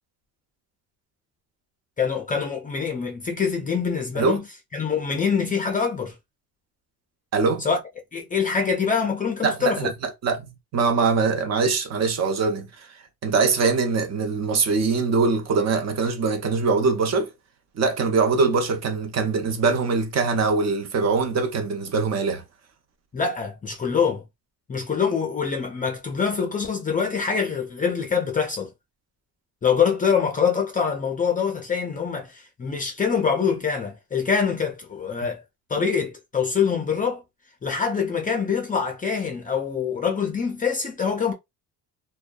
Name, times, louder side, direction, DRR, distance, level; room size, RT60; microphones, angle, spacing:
voice 1, 2.0-4.4 4.7-6.1 7.6-7.8 8.1-9.9 23.1-24.2 24.7-28.7 29.6-35.4 35.7-37.2 37.6-41.3, left 6 dB, 25° left, 0.4 m, -24 dB
voice 2, 7.3-7.6 9.4-9.9 10.2-10.5 10.7-12.9 13.2-17.3 17.8-22.4, right 4 dB, 45° right, 0.6 m, -22 dB
2.6 x 2.2 x 2.2 m
cardioid pair, 135°, 37 cm